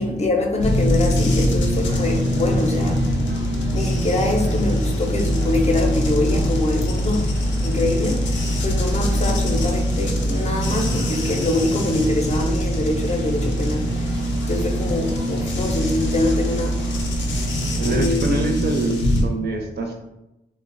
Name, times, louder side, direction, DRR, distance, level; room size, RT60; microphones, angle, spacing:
voice 1, 0.0-3.0 3.7-7.3 7.6-8.3 8.6-13.9 14.5-16.8 17.8-18.7, left 2 dB, 35° left, 0.5 m, -24 dB
sound 1, 0.6-19.2, equal, 90° left, 0.5 m, -23 dB
sound 2, 1.8-18.0, equal, 90° right, 0.8 m, -35 dB
voice 2, 17.8-20.0, right 2 dB, 60° right, 0.5 m, -25 dB
2.8 x 2.0 x 2.5 m
cardioid pair, 75°, 19 cm